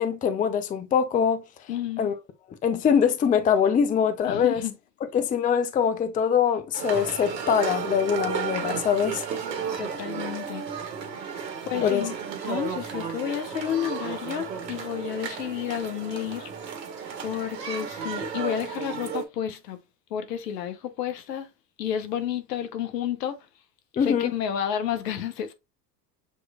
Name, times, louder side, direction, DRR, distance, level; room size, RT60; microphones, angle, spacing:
voice 1, 0.0-1.4 2.0-2.1 2.6-4.6 5.1-9.3 11.8-12.1 24.0-24.3, left 7 dB, 15° left, 0.5 m, -23 dB
voice 2, 1.7-2.1 4.2-4.7 9.8-10.6 11.6-12.2 12.4-16.5 17.2-19.8 20.1-21.5 21.8-23.4 24.0-25.5, left 9 dB, 75° left, 1.0 m, -31 dB
sound 1, 6.7-19.2, right 6 dB, 75° right, 1.3 m, -33 dB
6.9 x 3.1 x 2.3 m
hypercardioid pair, 80°, 49 cm